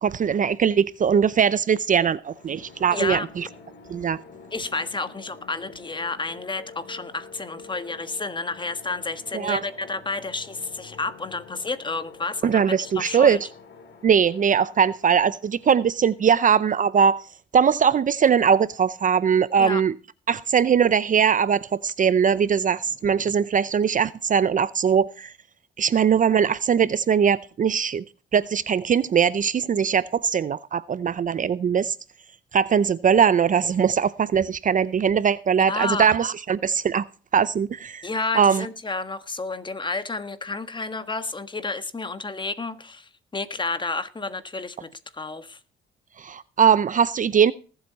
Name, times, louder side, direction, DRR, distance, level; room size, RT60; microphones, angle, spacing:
voice 1, 0.0-3.5 3.9-4.2 9.3-9.6 12.4-13.4 14.0-17.2 17.5-19.9 20.3-25.3 25.8-28.0 28.3-31.9 32.5-37.1 37.3-38.1 38.3-38.7 46.2-47.5, right 7 dB, 40° right, 0.6 m, -21 dB
sound 1, 2.2-16.9, left 5 dB, 60° left, 3.2 m, -47 dB
voice 2, 2.9-3.2 4.5-13.4 19.6-19.8 35.7-36.2 38.0-45.6, left 3 dB, 25° left, 1.5 m, -31 dB
19.5 x 8.0 x 4.1 m
cardioid pair, 90°, 20 cm